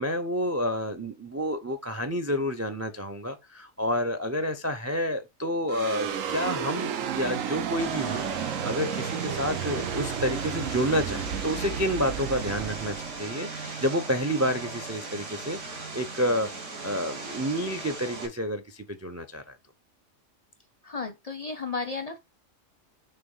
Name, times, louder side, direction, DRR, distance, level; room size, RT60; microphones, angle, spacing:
voice 1, 0.0-16.5 16.8-19.4, equal, 25° right, 0.3 m, -29 dB
sound 1, 5.7-14.2, right 7 dB, 85° right, 1.2 m, -32 dB
Vehicle, 7.8-18.3, right 3 dB, 70° right, 1.9 m, -38 dB
voice 2, 20.8-22.2, left 4 dB, 40° left, 0.6 m, -33 dB
6.7 x 3.0 x 5.4 m
omnidirectional pair, 1.3 m